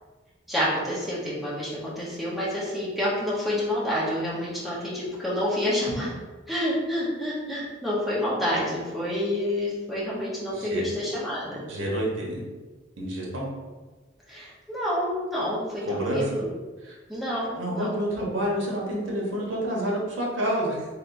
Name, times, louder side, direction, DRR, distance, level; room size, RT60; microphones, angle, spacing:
voice 1, 0.5-6.1 6.5-11.6 14.3-16.5 17.1-18.0, left 1 dB, ahead, -8 dB, 0.9 m, -28 dB
voice 2, 10.5-10.8 11.7-12.4 13.0-13.4 15.9-16.2 16.8-17.0 17.6-20.9, right 1 dB, 85° right, -3 dB, 0.9 m, -28 dB
3.4 x 2.9 x 2.5 m, 1.3 s
head